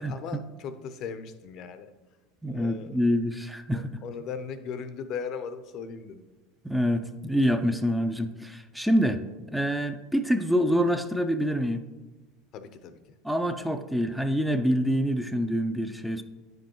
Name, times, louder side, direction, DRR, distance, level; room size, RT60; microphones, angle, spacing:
voice 1, 0.0-1.9 2.5-2.9 3.7-6.3 12.5-13.0, left 6 dB, 50° left, 11 dB, 0.5 m, -38 dB
voice 2, 2.4-3.9 6.6-9.2 9.5-11.8 13.2-16.2, equal, ahead, 8 dB, 0.4 m, -26 dB
9.2 x 5.2 x 3.0 m, 1.2 s
supercardioid pair, 110°, 0 cm